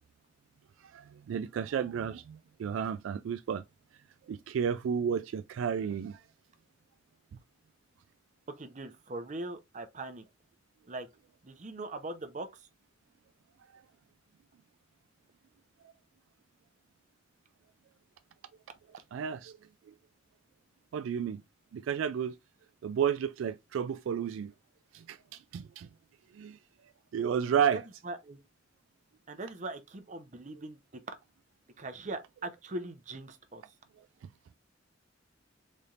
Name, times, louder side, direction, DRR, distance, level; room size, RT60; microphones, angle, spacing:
voice 1, 0.9-3.6 4.3-6.2 19.1-19.5 20.9-21.4 21.7-22.4 22.8-24.5 24.9-25.9 26.3-26.6 27.1-27.8, right 8 dB, 80° right, 0.3 m, -32 dB
voice 2, 8.6-10.2 10.9-11.1 11.4-12.7 27.6-28.4 29.3-30.8 31.8-33.6, right 2 dB, 40° right, 0.7 m, -41 dB
4.2 x 3.3 x 2.4 m
head